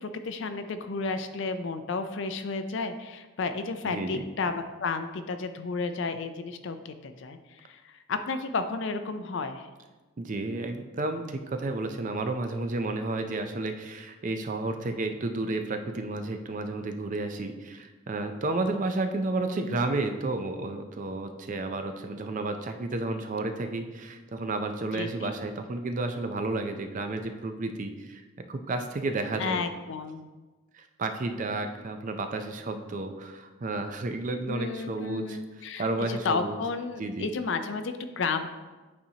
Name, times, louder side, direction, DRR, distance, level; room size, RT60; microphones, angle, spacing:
voice 1, 0.0-9.7 19.6-19.8 24.9-25.3 29.4-30.3 34.5-38.5, left 4 dB, 60° left, 9 dB, 0.4 m, -32 dB
voice 2, 3.8-4.2 10.2-29.6 30.7-35.4 35.8-36.6 37.0-37.3, right 2 dB, 35° right, 7 dB, 0.4 m, -32 dB
8.6 x 4.2 x 2.8 m, 1.2 s
head